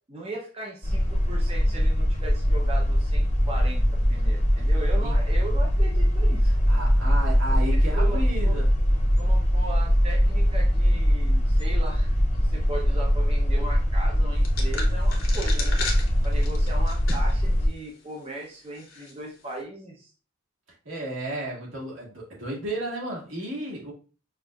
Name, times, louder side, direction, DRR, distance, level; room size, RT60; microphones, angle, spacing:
voice 1, 0.1-6.5 7.4-8.6 9.2-12.1 12.4-15.8 16.2-20.1, right 2 dB, 30° right, -2 dB, 0.7 m, -38 dB
sound 1, 0.8-17.7, equal, 40° left, 0.9 m, -22 dB
voice 2, 6.7-8.7 20.8-23.9, right 1 dB, 80° right, -4 dB, 1.8 m, -33 dB
sound 2, 14.4-17.4 17.8-17.9 18.8-19.1, left 4 dB, 70° left, 1.0 m, -35 dB
5.5 x 2.6 x 2.3 m, 0.36 s
head